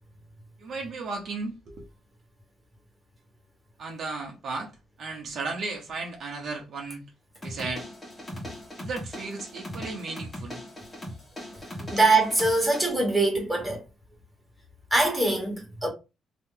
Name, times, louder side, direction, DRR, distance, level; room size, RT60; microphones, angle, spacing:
voice 1, 0.6-1.9 3.8-4.7 5.0-7.0 7.4-7.8 8.8-10.6 11.8-11.9, right 3 dB, 60° right, 0.9 m, -35 dB
sound 1, 7.4-12.9, left 1 dB, 20° left, 1.2 m, -39 dB
voice 2, 11.9-13.8 14.9-15.9, right 2 dB, 5° right, 1.4 m, -23 dB
2.8 x 2.3 x 3.7 m
cardioid pair, 90°, 0 cm